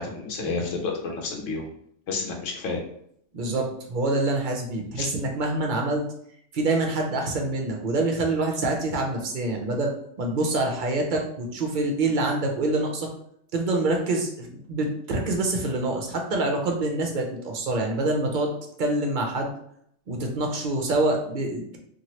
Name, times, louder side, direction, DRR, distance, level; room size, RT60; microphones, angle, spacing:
voice 1, 0.0-1.7 2.1-2.8 5.0-5.1, left 4 dB, 85° left, 1 dB, 1.0 m, -30 dB
voice 2, 3.3-6.0 6.5-9.9 10.2-13.1 13.5-18.5 18.8-19.5 20.1-21.8, right 2 dB, 55° right, 1 dB, 0.6 m, -26 dB
3.0 x 2.5 x 2.8 m, 0.69 s
omnidirectional pair, 1.3 m